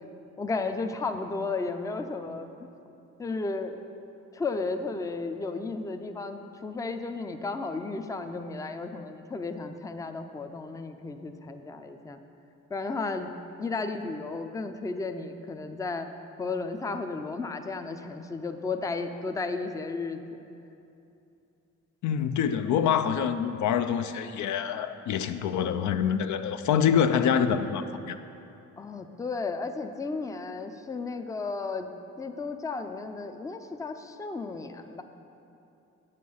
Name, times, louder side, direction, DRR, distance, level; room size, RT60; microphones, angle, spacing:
voice 1, 0.4-2.7 3.2-3.8 4.3-12.2 12.7-13.3 13.6-16.1 16.4-20.4 28.8-31.9 32.2-35.0, left 3 dB, 10° left, 7 dB, 0.4 m, -34 dB
voice 2, 22.0-28.2, left 8 dB, 70° left, 9 dB, 0.5 m, -26 dB
8.6 x 6.6 x 5.5 m, 2.8 s
cardioid pair, 90°, 30 cm